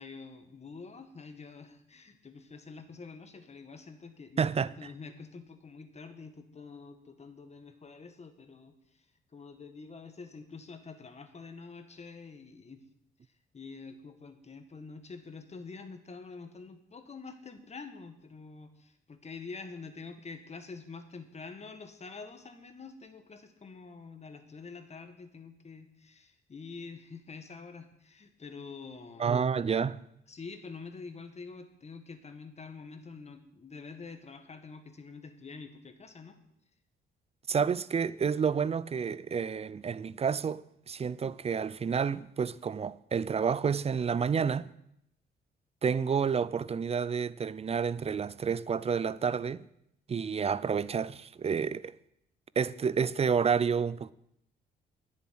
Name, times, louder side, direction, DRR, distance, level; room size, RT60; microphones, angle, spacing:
voice 1, 0.0-8.7 9.3-12.8 13.5-29.5 30.3-36.4, left 4 dB, 35° left, 1.7 m, -47 dB
voice 2, 4.4-4.9 29.2-30.0 37.5-44.7 45.8-49.6 50.1-52.0 52.6-54.1, right 6 dB, 30° right, 0.5 m, -29 dB
10.5 x 7.3 x 9.4 m
cardioid pair, 90°, 20 cm